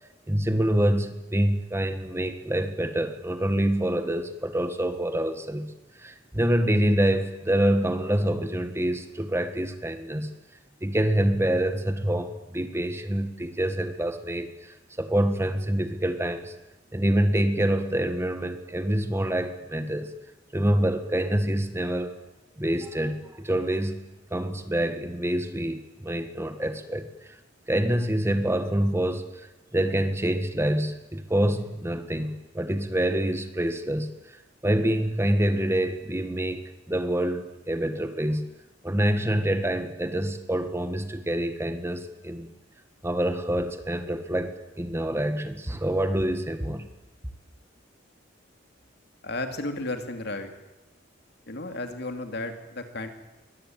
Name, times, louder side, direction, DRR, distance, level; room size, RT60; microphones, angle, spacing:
voice 1, 0.3-5.7 6.0-10.3 10.8-16.5 16.9-20.1 20.5-22.1 22.6-24.0 24.3-27.4 27.7-29.5 29.7-34.1 34.6-36.6 36.9-38.5 38.8-42.5 43.0-46.9, right 1 dB, 15° right, 8 dB, 1.6 m, -26 dB
voice 2, 49.2-50.5 51.5-53.1, left 2 dB, 60° left, 6 dB, 2.9 m, -33 dB
23.5 x 18.5 x 9.1 m, 1.0 s
head